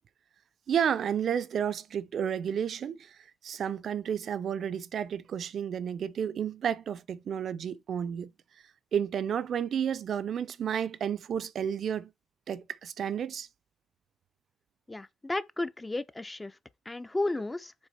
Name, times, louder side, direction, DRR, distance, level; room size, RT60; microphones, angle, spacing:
voice 1, 0.7-3.2 3.4-8.3 8.9-12.1 12.5-13.5, right 8 dB, 55° right, 0.5 m, -31 dB
voice 2, 14.9-16.6 16.9-17.7, left 2 dB, 15° left, 0.4 m, -33 dB
6.2 x 4.0 x 4.1 m
cardioid pair, 120°, 0 cm